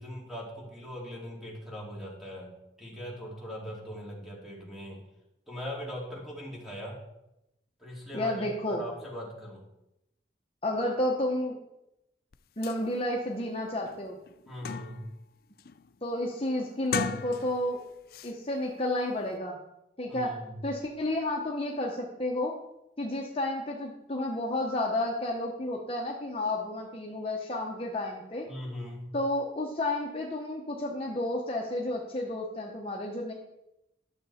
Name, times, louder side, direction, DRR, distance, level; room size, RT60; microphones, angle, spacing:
voice 1, 0.0-2.5 2.8-5.0 5.5-7.0 7.8-9.6 14.5-15.1 20.1-20.6 28.5-29.1, equal, ahead, -4 dB, 2.7 m, -40 dB
voice 2, 8.1-8.8 10.6-11.6 12.6-14.2 16.0-17.8 18.2-19.6 20.0-20.3 20.6-22.5 23.0-28.5 29.1-33.3, left 1 dB, 35° left, 0 dB, 1.0 m, -31 dB
sound 1, 12.3-12.4 12.6-12.8 13.3-13.4 13.9-15.2 15.6-15.9 16.8-17.8 18.1-18.3, left 6 dB, 55° left, 0.4 m, -36 dB
12.0 x 6.8 x 4.2 m, 0.89 s
head